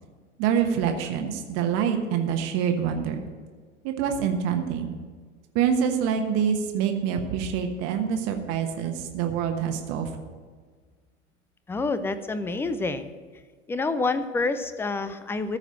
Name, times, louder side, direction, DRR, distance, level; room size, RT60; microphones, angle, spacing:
voice 1, 0.4-3.2 3.8-4.9 5.5-10.1, right 7 dB, 40° right, 5 dB, 1.2 m, -26 dB
voice 2, 11.7-13.1 13.7-15.6, left 3 dB, 5° left, 12 dB, 0.4 m, -27 dB
14.0 x 4.9 x 8.5 m, 1.5 s
figure-of-eight pair, 95°, 36 cm